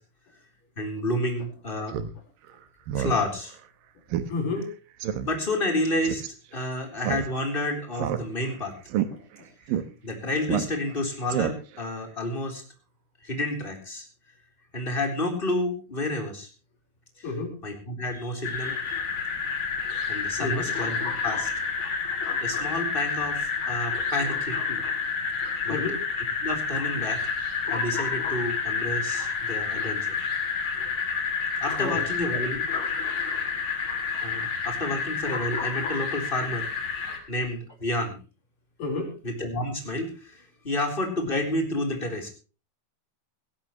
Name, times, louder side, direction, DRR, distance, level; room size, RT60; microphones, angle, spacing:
voice 1, 0.8-2.0 3.0-3.6 5.2-6.2 6.5-8.7 10.0-12.6 13.2-14.1 14.7-16.5 17.2-17.3 17.6-19.1 20.1-22.0 22.4-24.8 25.6-25.8 26.2-30.1 31.6-32.7 34.2-36.7 37.3-38.2 39.2-42.3, left 1 dB, 15° left, 4 dB, 3.5 m, -30 dB
Speech synthesizer, 1.9-2.1 2.5-2.6 2.9-3.2 3.5-3.6 4.1-4.3 4.6-4.7 5.0-5.3 6.0-6.3 7.0-7.6 7.9-8.5 8.9-9.1 9.7-9.8 10.5-11.0 11.3-11.8, right 10 dB, 70° right, 2.8 m, -28 dB
voice 2, 4.3-4.7 9.1-9.2 17.2-17.5 20.4-20.7 25.7-26.0 31.8-32.0 38.8-39.1, left 3 dB, 55° left, 3 dB, 5.9 m, -30 dB
sound 1, 18.4-37.2, left 5 dB, 35° left, 3.3 m, -29 dB
18.0 x 16.5 x 3.1 m, 0.34 s
omnidirectional pair, 4.5 m